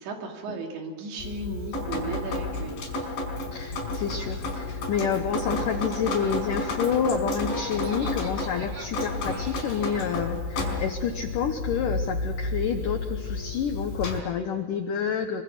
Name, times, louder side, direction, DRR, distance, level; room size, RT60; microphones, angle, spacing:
voice 1, 0.0-2.8, right 3 dB, 70° right, 2 dB, 4.9 m, -35 dB
Drip, 1.2-14.2, left 2 dB, 55° left, 6.5 m, -31 dB
voice 2, 3.5-15.4, left 7 dB, 85° left, 6 dB, 1.8 m, -29 dB
Laughter, 7.4-10.2, equal, 35° right, 2.1 m, -41 dB
25.0 x 24.0 x 6.0 m, 1.5 s
omnidirectional pair, 5.4 m